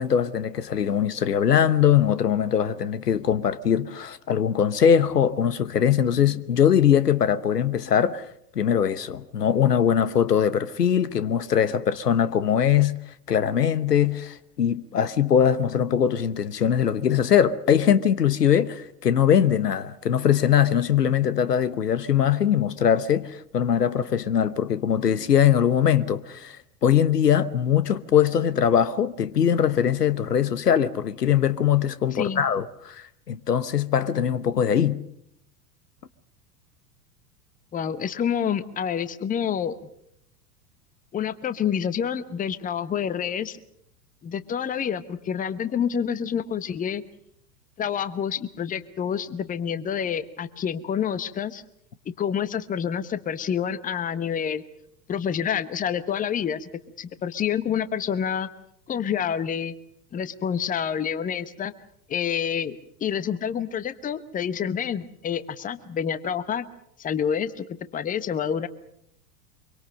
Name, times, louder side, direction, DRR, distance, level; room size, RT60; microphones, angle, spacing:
voice 1, 0.0-8.2 8.5-13.0 13.3-26.6 26.8-35.0, left 9 dB, 75° left, 1.1 m, -21 dB
voice 2, 32.1-32.4 37.7-39.8 41.1-43.6 44.2-47.0 47.8-51.6 52.1-54.6 55.1-56.7 57.0-58.5 58.9-59.7 60.1-61.7 62.1-66.7 67.0-67.7 67.9-68.7, left 8 dB, 15° left, 1.0 m, -28 dB
25.0 x 24.0 x 6.5 m
figure-of-eight pair, 90°, 48 cm